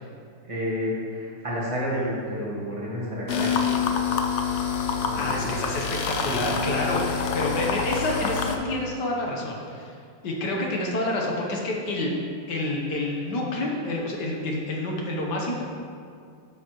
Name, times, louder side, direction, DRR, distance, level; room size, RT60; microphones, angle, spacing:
voice 1, 0.4-3.8 5.0-5.5, equal, 20° right, -6 dB, 1.6 m, -30 dB
sound 1, 3.3-8.6, left 6 dB, 85° left, 0.6 m, -26 dB
voice 2, 5.1-9.9 10.2-12.1 12.5-15.6, left 2 dB, 65° left, -1 dB, 1.6 m, -28 dB
10.0 x 7.1 x 3.1 m, 2.3 s
omnidirectional pair, 2.0 m